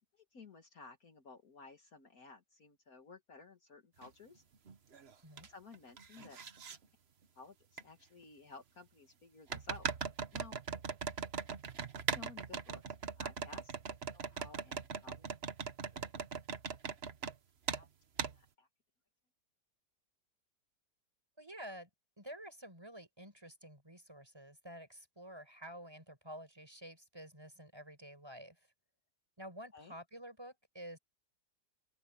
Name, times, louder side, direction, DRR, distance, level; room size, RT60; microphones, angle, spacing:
voice 1, 0.3-4.4 5.5-6.4 7.4-9.9 10.3-10.6 12.1-12.8 13.2-13.7 14.1-15.3 15.9-16.1 17.7-17.9 18.3-18.7 29.7-30.0, left 4 dB, 55° left, 2.1 m, -55 dB
sound 1, 4.0-4.1 4.7-5.5 5.7-6.8 7.8-7.9 9.5-17.4 17.7-17.8 18.2-18.4, right 6 dB, 40° right, 1.2 m, -40 dB
voice 2, 21.4-21.9 22.2-28.6 29.4-31.0, equal, 15° right, 6.0 m, -50 dB
open air
omnidirectional pair, 1.8 m